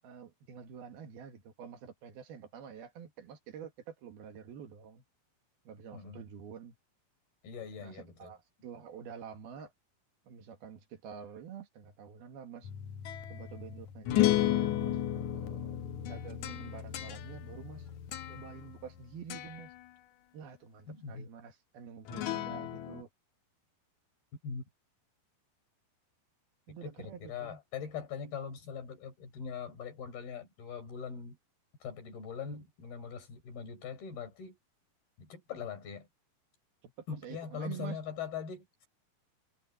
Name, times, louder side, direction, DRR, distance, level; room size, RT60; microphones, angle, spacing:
voice 1, 0.0-5.0 5.7-6.8 7.8-9.7 10.3-12.7 13.3-17.9 18.3-19.7 20.3-23.1 26.7-27.6 36.8-38.0, right 7 dB, 80° right, 4.1 m, -48 dB
voice 2, 5.9-6.2 7.4-8.3 20.9-21.3 24.4-24.7 26.8-31.4 31.8-34.6 35.2-36.1 37.1-38.9, left 6 dB, 85° left, 7.4 m, -41 dB
sound 1, 12.6-19.0 19.3-19.7 22.1-23.0, left 13 dB, 65° left, 2.0 m, -33 dB
omnidirectional pair, 4.3 m